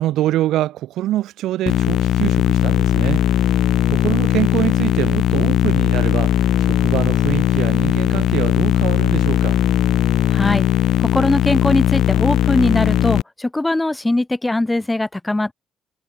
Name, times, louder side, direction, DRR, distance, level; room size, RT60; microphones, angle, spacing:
voice 1, 0.0-9.6, right 14 dB, 85° right, 1.1 m, -25 dB
sound 1, 1.7-13.2, left 12 dB, 75° left, 0.5 m, -18 dB
voice 2, 10.3-10.7 11.0-15.5, left 2 dB, 15° left, 0.9 m, -20 dB
cardioid pair, 90°, 0 cm